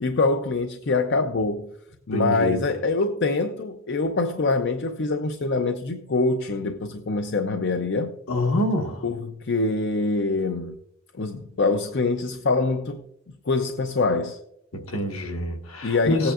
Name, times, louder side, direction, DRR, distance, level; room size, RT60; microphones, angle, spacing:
voice 1, 0.0-1.7 2.1-8.1 9.0-10.7 11.1-13.0 13.5-14.4 15.8-16.3, left 3 dB, 50° left, 0.5 m, -24 dB
voice 2, 2.1-2.6 8.3-9.0 14.9-16.3, left 1 dB, 70° left, 1.5 m, -25 dB
17.5 x 8.6 x 2.4 m
head